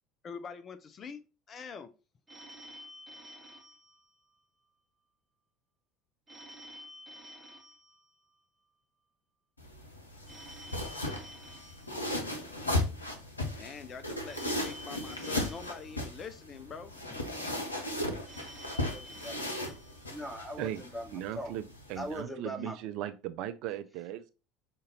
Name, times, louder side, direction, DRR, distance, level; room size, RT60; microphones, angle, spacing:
voice 1, 0.2-1.2 1.5-1.9 13.6-17.6, left 5 dB, 35° left, 0.5 m, -45 dB
Telephone, 2.3-4.8 6.3-8.8 10.3-12.8 14.3-16.7 18.3-20.7, equal, 20° right, 0.9 m, -51 dB
sound 1, 9.6-22.2, left 1 dB, 85° left, 0.8 m, -36 dB
voice 2, 18.7-19.5 20.1-21.5 21.9-22.8, equal, ahead, 1.2 m, -41 dB
voice 3, 21.1-24.3, right 11 dB, 55° right, 0.4 m, -38 dB
5.1 x 2.5 x 4.0 m
figure-of-eight pair, 70°, 0 cm